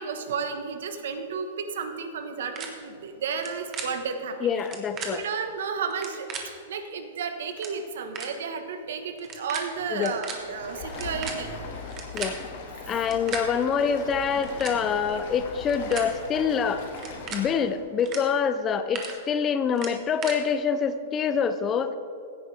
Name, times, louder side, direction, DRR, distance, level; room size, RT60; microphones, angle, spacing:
voice 1, 0.0-4.4 5.1-6.3 6.6-11.8, right 6 dB, 70° right, 7 dB, 1.3 m, -32 dB
sound 1, 2.5-2.7 3.3-3.9 4.6-5.1 5.9-6.4 7.2-7.3 7.5-7.7 8.1-8.3 9.2-9.6 9.9-10.3 10.9-12.3 13.0-13.4 14.3-14.8 15.5-16.1 16.9-17.4 18.0-18.2 18.6-19.1 19.7-20.4, right 7 dB, 20° right, 1.3 m, -35 dB
voice 2, 4.4-5.2 9.9-10.1 12.1-12.4 12.9-16.9 17.3-21.9, left 6 dB, 15° left, 11 dB, 0.4 m, -26 dB
Stream, 10.3-17.8, left 4 dB, 50° left, 1.9 m, -39 dB
16.0 x 9.8 x 3.4 m, 2.7 s
supercardioid pair, 170°, 0 cm